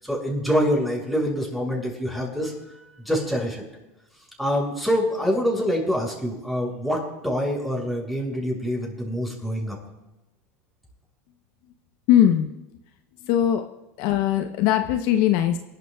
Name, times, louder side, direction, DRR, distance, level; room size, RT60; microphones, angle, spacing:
voice 1, 0.0-3.6 4.4-7.0 7.2-9.8, equal, ahead, -2 dB, 6.0 m, -25 dB
voice 2, 12.1-12.5 13.2-13.6 14.0-15.6, left 11 dB, 60° left, 6 dB, 0.8 m, -20 dB
28.0 x 12.0 x 2.3 m, 0.99 s
supercardioid pair, 105°, 8 cm